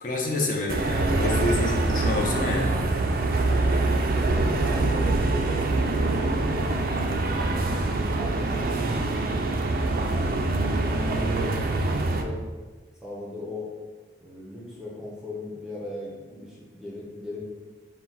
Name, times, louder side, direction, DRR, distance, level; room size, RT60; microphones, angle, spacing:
voice 1, 0.0-2.8, left 2 dB, 45° left, -1 dB, 0.7 m, -27 dB
sound 1, 0.7-12.2, right 2 dB, 50° right, 0.3 m, -24 dB
voice 2, 4.2-6.7 8.1-8.7 10.0-10.3 10.8-12.4 13.0-13.7 14.2-17.4, left 1 dB, 5° right, -5 dB, 0.6 m, -38 dB
4.4 x 2.2 x 4.0 m, 1.4 s
head